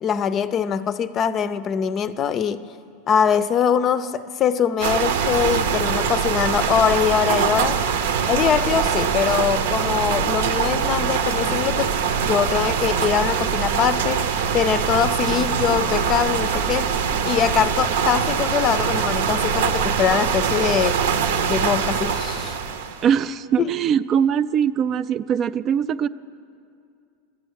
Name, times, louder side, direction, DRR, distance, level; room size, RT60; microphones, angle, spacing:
voice 1, 0.0-2.7 3.1-7.8 8.3-11.9 12.2-14.2 14.5-17.0 17.2-21.0 21.5-22.6 23.6-23.7, left 8 dB, 35° left, 14 dB, 0.5 m, -22 dB
sound 1, 4.8-23.1, right 7 dB, 75° right, 0.8 m, -23 dB
voice 2, 23.0-26.1, right 8 dB, 35° right, 15 dB, 0.3 m, -21 dB
12.5 x 9.1 x 8.1 m, 2.4 s
hypercardioid pair, 115°, 0 cm